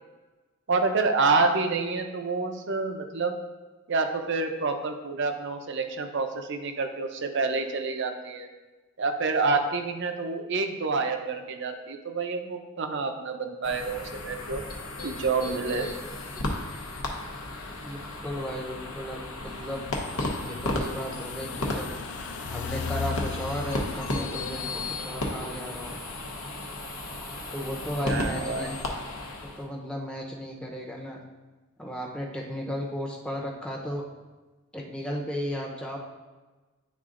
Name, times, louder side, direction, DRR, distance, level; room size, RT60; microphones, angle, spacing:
voice 1, 0.7-3.4 3.9-8.5 9.0-14.6 15.0-15.9 28.0-28.7, right 3 dB, 55° right, 6 dB, 0.6 m, -28 dB
sound 1, 13.6-29.7, left 2 dB, 90° left, 1.0 m, -34 dB
voice 2, 17.8-19.9 20.4-22.0 22.5-26.0 27.5-28.8 29.6-31.2 31.8-34.1 34.7-36.0, equal, 5° left, -2 dB, 0.7 m, -34 dB
sound 2, 19.5-25.7, left 6 dB, 55° left, 0.3 m, -39 dB
10.0 x 3.8 x 2.5 m, 1.2 s
head